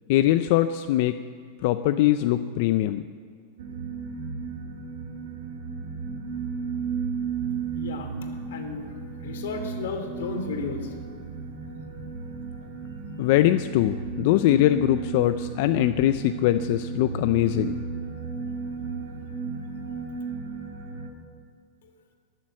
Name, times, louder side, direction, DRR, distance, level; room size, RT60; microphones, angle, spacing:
voice 1, 0.1-1.1 1.6-3.0 13.2-17.8, left 14 dB, 50° left, 10 dB, 0.4 m, -22 dB
sound 1, 3.6-21.1, right 5 dB, 70° right, 2.1 m, -34 dB
voice 2, 7.7-8.1 8.5-8.8 9.2-11.0 21.8-21.9, left 4 dB, 85° left, 5 dB, 2.8 m, -33 dB
21.5 x 7.6 x 7.6 m, 2.1 s
supercardioid pair, 165°, 0 cm